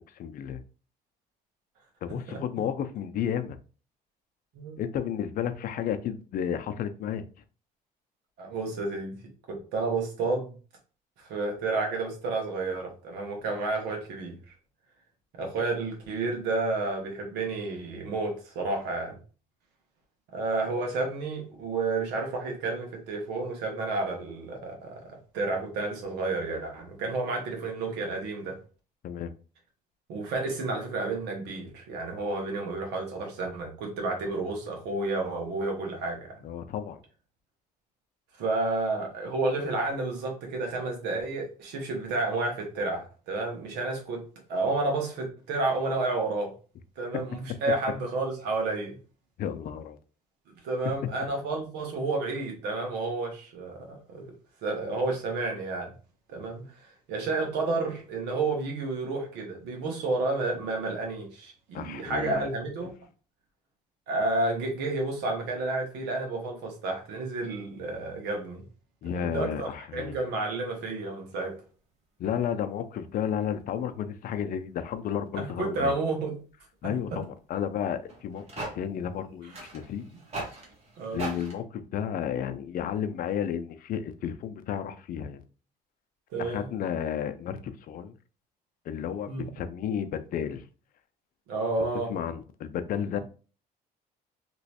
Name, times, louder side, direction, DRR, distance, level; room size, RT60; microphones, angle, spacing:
voice 1, 0.1-0.6 2.0-3.6 4.8-7.2 29.0-29.3 36.4-37.0 49.4-50.0 51.0-51.1 61.7-62.5 69.0-70.2 72.2-75.9 76.8-80.0 81.1-85.4 86.4-88.1 88.9-90.6 92.1-93.2, left 9 dB, 55° left, 0.5 m, -32 dB
voice 2, 8.4-9.2 9.5-10.5 11.2-14.3 15.4-19.2 20.3-24.9 25.3-28.6 30.1-36.3 38.4-44.2 44.5-46.5 47.0-49.0 50.6-54.2 54.6-55.9 56.3-62.9 64.1-68.6 69.1-71.5 75.3-76.3 76.8-77.2 81.0-81.2 86.3-86.6 89.3-89.4 91.5-92.1, right 3 dB, 90° right, 1.2 m, -31 dB
sound 1, 71.6-71.7 73.3-73.6 75.6-75.7 76.1-76.2 76.4-76.6 77.4-77.5 78.1-81.6, right 2 dB, 40° right, 1.2 m, -40 dB
3.0 x 3.0 x 2.8 m
cardioid pair, 110°, 17 cm